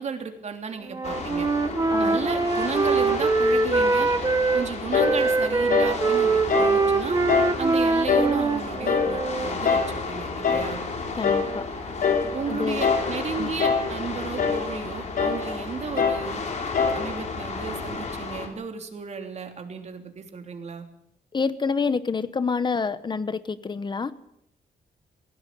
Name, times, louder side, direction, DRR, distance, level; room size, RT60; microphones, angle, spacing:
voice 1, 0.0-1.5 2.0-4.1 4.5-7.2 7.6-10.8 12.3-16.5 16.9-20.8, right 5 dB, 45° right, 5 dB, 3.1 m, -34 dB
Wind instrument woodwind instrument, 0.9-4.7 5.0-9.5, right 3 dB, 25° right, 1.8 m, -23 dB
sound 1, 1.0-18.5, left 3 dB, 45° left, 3.8 m, -33 dB
voice 2, 1.9-2.2 11.2-11.6 12.5-12.9 13.4-13.5 21.3-24.1, left 5 dB, 30° left, 14 dB, 1.1 m, -27 dB
sound 2, 4.9-5.2 5.7-6.0 6.5-6.8 7.3-7.6 8.1-8.4 8.8-9.2 9.6-9.9 10.4-10.7 11.2-11.5 12.0-12.3 12.8-13.1 13.6-13.9 14.4-14.7 15.2-15.5 16.0-16.3 16.7-17.1, left 6 dB, 65° left, 3.8 m, -23 dB
19.0 x 16.5 x 8.5 m, 0.78 s
cardioid pair, 130°, 16 cm